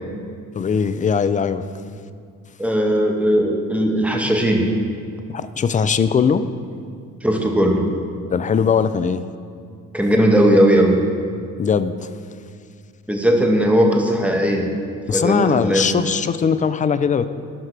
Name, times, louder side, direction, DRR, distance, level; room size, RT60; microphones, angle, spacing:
voice 1, 0.5-1.7 5.3-6.4 8.3-9.2 11.6-12.1 15.1-17.3, left 6 dB, 20° left, 12 dB, 0.3 m, -20 dB
voice 2, 2.6-4.6 7.2-7.9 9.9-11.0 13.1-14.7 15.1-15.9, equal, 5° right, 1 dB, 1.3 m, -17 dB
12.5 x 5.6 x 3.3 m, 2.2 s
hypercardioid pair, 55°, 39 cm